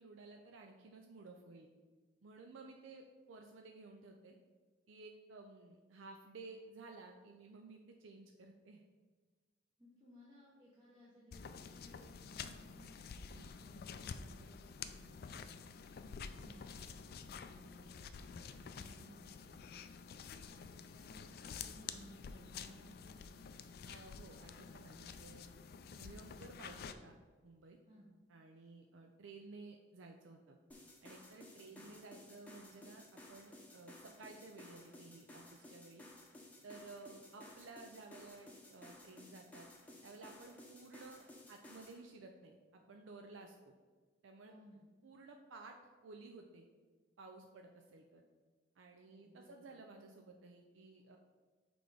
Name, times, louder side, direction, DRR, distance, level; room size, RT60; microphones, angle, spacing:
voice 1, 0.0-1.7 2.2-4.4 4.9-8.8 13.3-13.5 23.8-25.4 25.9-27.2 27.4-27.8 28.3-30.6 31.0-36.1 36.6-39.7 40.0-43.7 44.2-44.5 45.0-45.8 46.0-46.7 47.2-48.2 48.8-51.2, right 3 dB, 90° right, 3 dB, 0.5 m, -55 dB
voice 2, 9.8-15.6 16.0-23.3 27.9-28.1 31.5-31.9 44.4-44.9 49.0-49.7, equal, 25° right, -6 dB, 1.0 m, -62 dB
sound 1, 11.3-26.9, left 6 dB, 50° left, 0.3 m, -49 dB
sound 2, 30.7-42.0, left 1 dB, 10° left, 0.8 m, -57 dB
6.0 x 3.4 x 4.9 m, 1.4 s
head